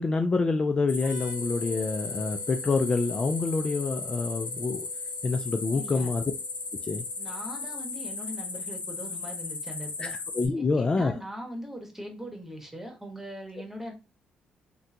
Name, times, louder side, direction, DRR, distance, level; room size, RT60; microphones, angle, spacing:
voice 1, 0.0-4.9 5.2-6.2 6.8-7.0 10.0-11.2, left 3 dB, 30° left, 0.4 m, -27 dB
sound 1, 0.9-10.5, left 4 dB, 50° left, 1.0 m, -36 dB
sound 2, 1.0-8.5, right 4 dB, 50° right, 0.7 m, -51 dB
voice 2, 5.7-6.1 7.2-10.1 10.6-13.9, equal, 10° right, 1.3 m, -40 dB
3.6 x 2.2 x 2.8 m
supercardioid pair, 70°, 3 cm